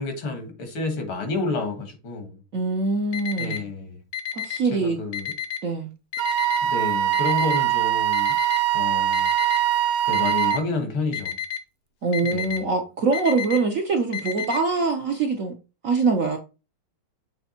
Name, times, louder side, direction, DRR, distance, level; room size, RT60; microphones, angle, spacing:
voice 1, 0.0-2.4 3.4-4.0 4.7-5.3 6.6-8.3 8.7-9.3 10.1-11.4 12.2-12.6, left 3 dB, 80° left, 2.4 m, -29 dB
voice 2, 2.5-3.6 4.3-5.0 5.6-5.9 12.0-15.5 15.8-16.4, right 4 dB, 60° right, 0.9 m, -23 dB
Alarm, 3.1-3.6 4.1-4.6 5.1-5.6 6.1-6.6 7.1-7.6 8.1-8.6 9.1-9.6 10.1-10.6 11.1-11.6 12.1-12.6 13.1-13.6 14.1-14.6, left 9 dB, 55° left, 1.0 m, -30 dB
Wind instrument woodwind instrument, 6.2-10.6, right 12 dB, 85° right, 1.5 m, -22 dB
7.0 x 3.3 x 4.3 m
omnidirectional pair, 2.3 m